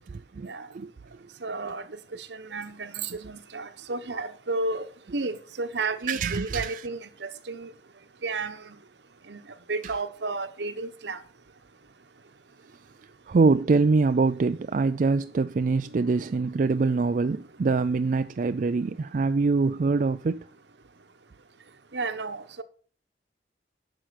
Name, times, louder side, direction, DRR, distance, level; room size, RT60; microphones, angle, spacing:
voice 1, 1.4-1.8 2.3-4.8 5.1-7.7 8.2-8.6 9.3-9.4 9.7-11.2 15.9-16.1 16.8-16.9 21.9-22.6, right 3 dB, 70° right, 1.0 m, -32 dB
voice 2, 6.1-6.9 9.8-9.9 13.3-20.4, right 4 dB, 45° right, 0.4 m, -24 dB
10.5 x 6.3 x 6.4 m
head